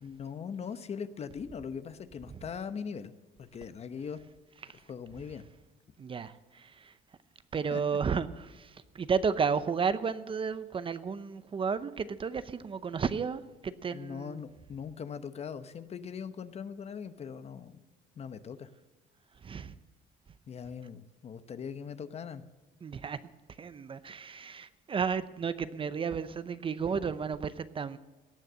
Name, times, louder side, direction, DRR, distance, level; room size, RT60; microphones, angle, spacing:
voice 1, 0.0-4.2 4.9-5.5 7.7-7.8 13.9-17.8 18.2-18.7 20.5-22.5, left 6 dB, 40° left, 13 dB, 0.9 m, -40 dB
voice 2, 6.0-7.0 7.5-14.4 19.3-19.8 22.8-23.2 23.5-28.0, right 6 dB, 30° right, 14 dB, 0.7 m, -33 dB
18.0 x 6.5 x 7.7 m, 1.2 s
cardioid pair, 110°, 17 cm